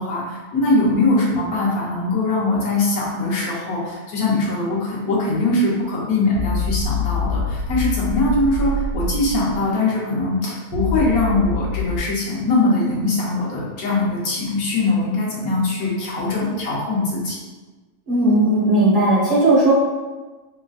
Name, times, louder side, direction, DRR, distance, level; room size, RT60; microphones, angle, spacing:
voice 1, 0.0-17.4, left 2 dB, 75° left, -5 dB, 1.3 m, -21 dB
sound 1, 6.3-9.6 10.7-12.0, left 3 dB, 85° right, 1.1 m, -25 dB
voice 2, 18.1-19.7, right 2 dB, 35° right, -7 dB, 1.2 m, -16 dB
3.6 x 2.4 x 2.3 m, 1.3 s
omnidirectional pair, 1.6 m